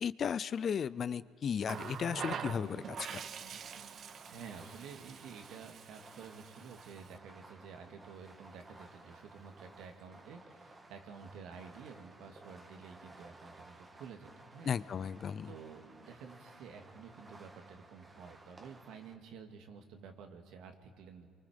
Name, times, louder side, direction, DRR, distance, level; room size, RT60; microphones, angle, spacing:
voice 1, 0.0-3.2 14.7-15.5, left 7 dB, 45° left, 18 dB, 0.5 m, -35 dB
Water tap faucet, 1.6-7.2 8.4-8.6, right 7 dB, 50° right, 0.8 m, -45 dB
Fireworks, 1.9-19.1, right 2 dB, 25° right, 2.0 m, -57 dB
voice 2, 4.3-14.8 15.4-21.3, right 6 dB, 80° right, 5 dB, 2.2 m, -51 dB
28.5 x 23.5 x 5.2 m, 2.2 s
cardioid pair, 115°, 0 cm